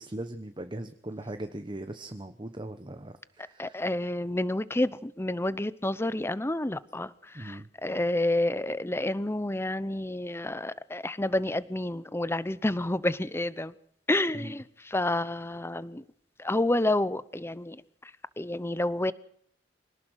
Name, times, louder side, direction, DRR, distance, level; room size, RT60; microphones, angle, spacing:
voice 1, 0.0-3.8 7.3-7.7 14.3-14.5, right 1 dB, 25° right, 1.1 m, -39 dB
voice 2, 3.6-13.7 14.1-16.0 16.4-18.1 18.4-19.1, left 1 dB, 15° left, 0.8 m, -29 dB
25.5 x 18.5 x 6.4 m
head